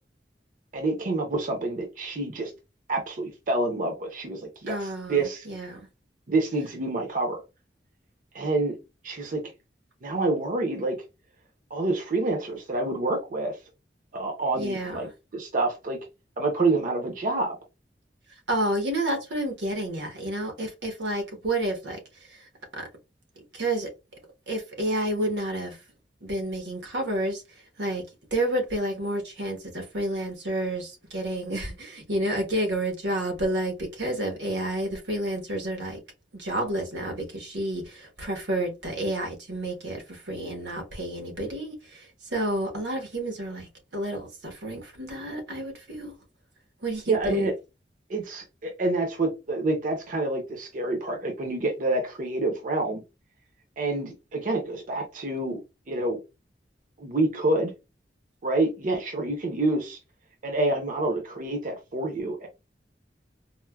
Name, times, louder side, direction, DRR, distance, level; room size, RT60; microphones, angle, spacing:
voice 1, 0.7-2.5 2.9-5.5 6.3-7.4 8.3-8.8 9.0-9.4 10.0-11.0 11.7-13.5 14.1-15.1 15.3-16.0 16.4-17.5 47.1-47.5 48.1-53.0 53.8-55.6 55.9-56.2 57.0-57.7 58.4-60.0 60.4-62.5, right 2 dB, 50° right, 0.6 m, -27 dB
voice 2, 4.7-5.8 14.5-15.1 18.5-22.0 22.3-22.9 23.5-23.9 24.5-25.8 26.2-27.4 27.8-28.0 28.3-36.0 36.3-46.1 46.8-47.5, right 1 dB, 85° right, 1.0 m, -30 dB
4.2 x 2.1 x 2.2 m
head